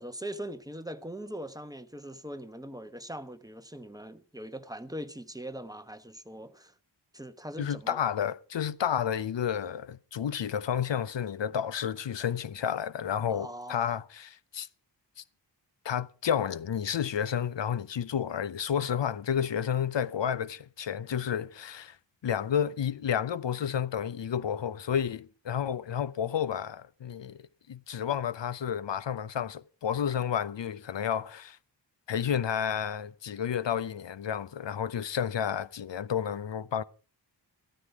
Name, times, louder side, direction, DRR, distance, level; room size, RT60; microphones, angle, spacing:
voice 1, 0.0-6.7 7.1-8.0 13.3-13.9, right 1 dB, 10° right, 1.0 m, -41 dB
voice 2, 7.6-14.7 15.2-15.3 15.8-22.0 22.2-31.6 32.1-36.8, left 8 dB, 80° left, 0.8 m, -31 dB
14.5 x 13.0 x 4.8 m
wide cardioid pair, 120°, 44 cm